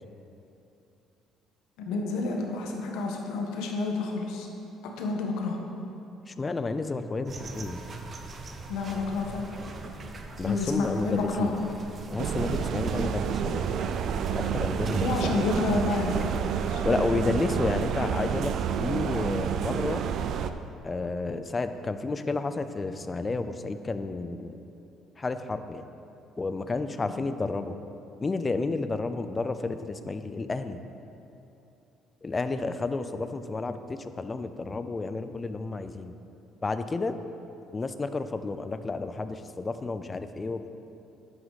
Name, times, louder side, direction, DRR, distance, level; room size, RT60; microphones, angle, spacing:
voice 1, 1.9-4.5 5.0-5.6 8.7-9.5 10.4-11.5 15.0-16.2 16.7-16.8, left 3 dB, 85° left, 1 dB, 1.3 m, -29 dB
voice 2, 6.3-7.8 10.4-11.6 12.1-13.7 14.3-15.7 16.8-20.0 20.8-24.6 25.2-25.8 26.4-27.8 28.2-30.8 32.2-36.2 36.6-37.1 37.7-40.7, left 3 dB, 20° left, 10 dB, 0.5 m, -31 dB
sound 1, 7.3-16.4, right 3 dB, 30° right, 0.8 m, -39 dB
sound 2, 12.2-20.5, right 8 dB, 55° right, 0.4 m, -29 dB
11.0 x 7.9 x 4.1 m, 2.8 s
cardioid pair, 125°, 0 cm